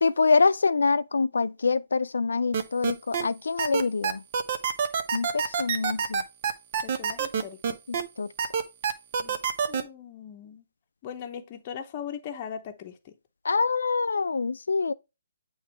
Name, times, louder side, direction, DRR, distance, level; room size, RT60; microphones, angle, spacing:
voice 1, 0.0-4.2 5.1-6.2 8.2-8.3 13.4-14.9, left 4 dB, 75° left, 0.4 m, -25 dB
sound 1, 2.5-3.2 3.6-8.0 8.4-9.8, right 7 dB, 45° right, 0.8 m, -26 dB
voice 2, 6.8-7.8 9.2-9.4 9.7-10.6 11.0-13.1, left 8 dB, 35° left, 0.8 m, -39 dB
8.2 x 3.1 x 4.4 m
hypercardioid pair, 145°, 0 cm